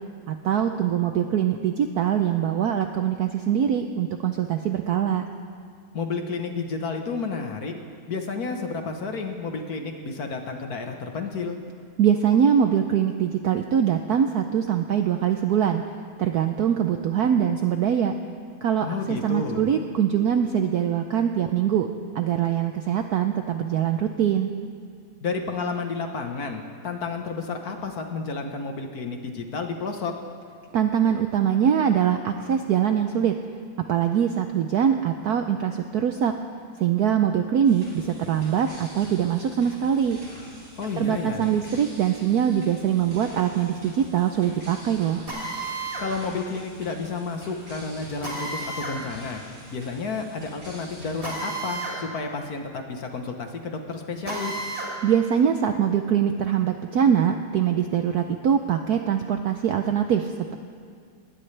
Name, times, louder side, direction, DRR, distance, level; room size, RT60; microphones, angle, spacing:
voice 1, 0.3-5.2 12.0-15.8 16.2-18.1 18.6-21.9 22.1-24.5 30.7-33.3 33.9-36.3 36.8-40.2 41.0-45.2 55.0-60.5, right 9 dB, 70° right, 6 dB, 0.9 m, -23 dB
voice 2, 5.9-7.7 8.1-11.6 18.8-19.7 25.2-30.1 40.8-41.5 46.0-49.4 49.7-54.6, left 4 dB, 50° left, 4 dB, 1.4 m, -31 dB
sound 1, 37.6-51.3, equal, 35° right, 4.6 m, -47 dB
Drill, 45.3-46.1 48.2-49.0 51.2-52.0 52.3-52.4 54.2-54.9, right 2 dB, 15° right, 3.3 m, -32 dB
20.5 x 18.0 x 3.3 m, 2.2 s
omnidirectional pair, 2.3 m